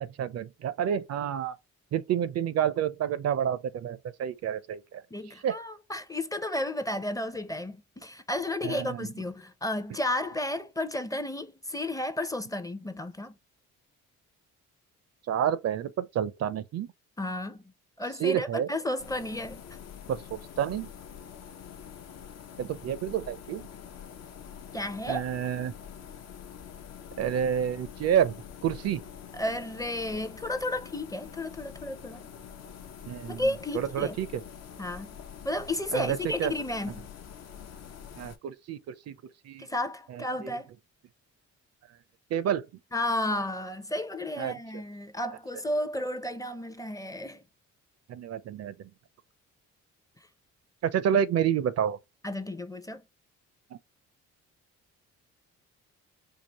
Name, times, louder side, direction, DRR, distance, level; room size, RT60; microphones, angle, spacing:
voice 1, 0.0-1.5 1.9-5.0 5.4-5.5 8.6-9.1 15.3-16.9 18.2-18.7 20.1-20.9 22.6-23.7 25.1-25.8 27.2-28.3 28.6-29.0 33.1-33.4 33.7-34.4 35.9-36.5 38.2-39.2 39.4-39.7 40.1-40.5 42.3-42.7 44.4-44.6 48.1-48.7 50.8-52.0 53.7-53.8, right 9 dB, 60° right, 0.5 m, -29 dB
voice 2, 5.1-13.3 17.2-17.7 18.0-19.6 24.7-25.2 29.3-32.3 33.3-34.2 34.8-35.2 35.4-37.1 39.6-40.7 42.9-47.4 52.2-53.0, left 1 dB, 10° left, 0.5 m, -32 dB
sound 1, 19.0-38.4, left 8 dB, 60° left, 0.7 m, -46 dB
4.7 x 2.4 x 2.8 m
cardioid pair, 90°, 30 cm